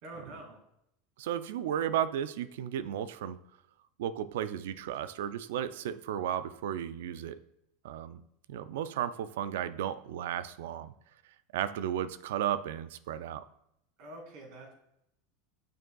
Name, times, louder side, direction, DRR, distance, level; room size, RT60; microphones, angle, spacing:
voice 1, 0.0-0.6 14.0-14.7, right 2 dB, 60° right, 1 dB, 2.3 m, -46 dB
voice 2, 1.2-3.4 4.0-7.4 7.8-8.2 8.5-10.9 11.5-13.4, right 10 dB, 80° right, 14 dB, 0.3 m, -34 dB
6.7 x 6.2 x 2.3 m, 0.79 s
supercardioid pair, 125°, 0 cm